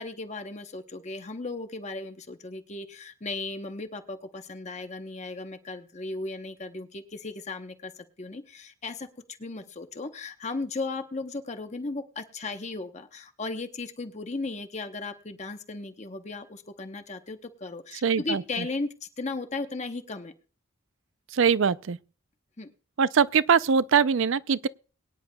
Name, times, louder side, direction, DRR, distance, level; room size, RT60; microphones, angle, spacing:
voice 1, 0.0-9.1 9.4-20.3 22.6-22.7, left 3 dB, 30° left, 0.8 m, -36 dB
voice 2, 18.0-18.7 21.3-22.0 23.0-24.7, right 6 dB, 65° right, 0.4 m, -22 dB
23.0 x 9.8 x 2.3 m
head